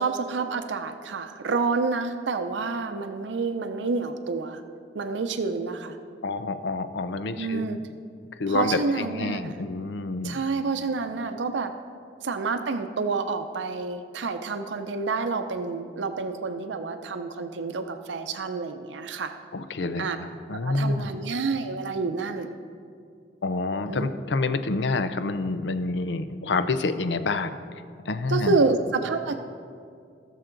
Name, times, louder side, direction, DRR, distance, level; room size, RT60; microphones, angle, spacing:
voice 1, 0.0-4.6 4.9-6.0 7.4-7.8 8.5-9.6 10.2-11.7 12.2-19.3 20.0-20.2 20.5-22.5 23.9-24.1 28.3-29.4, right 4 dB, 85° right, 7 dB, 0.6 m, -28 dB
voice 2, 6.2-7.8 8.3-10.4 19.5-21.2 23.4-27.6 28.0-28.6, left 3 dB, 80° left, 10 dB, 0.6 m, -28 dB
18.5 x 6.6 x 3.9 m, 2.3 s
head